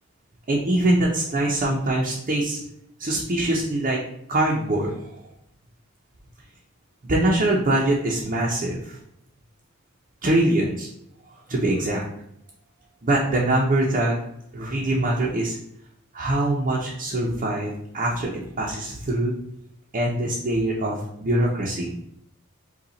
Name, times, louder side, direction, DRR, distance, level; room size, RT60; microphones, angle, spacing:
voice 1, 0.5-2.6 3.0-4.0 4.3-5.1 7.1-9.0 10.2-10.9 11.5-12.0 13.0-14.2 14.5-15.6 16.1-18.3 18.6-19.3 19.9-21.9, right 1 dB, 40° right, -3 dB, 0.7 m, -23 dB
5.4 x 2.4 x 4.0 m, 0.75 s
head